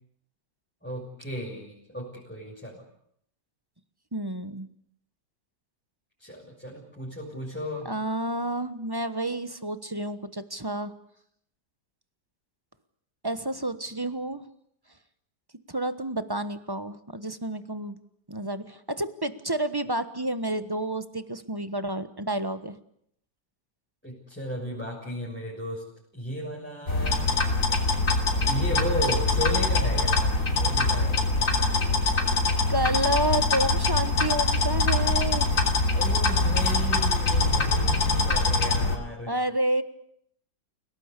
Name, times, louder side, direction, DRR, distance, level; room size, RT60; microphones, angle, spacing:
voice 1, 0.8-2.8 6.2-7.9 24.0-25.8 26.1-27.3 28.4-31.3 35.9-39.3, equal, 5° left, -5 dB, 6.5 m, -35 dB
voice 2, 4.1-4.7 7.8-10.9 13.2-14.4 15.7-18.0 18.3-22.8 32.7-35.5 39.3-39.8, right 1 dB, 15° right, 11 dB, 1.1 m, -30 dB
sound 1, 26.9-39.0, left 3 dB, 45° left, 3.6 m, -23 dB
29.0 x 18.5 x 8.4 m, 0.70 s
omnidirectional pair, 1.9 m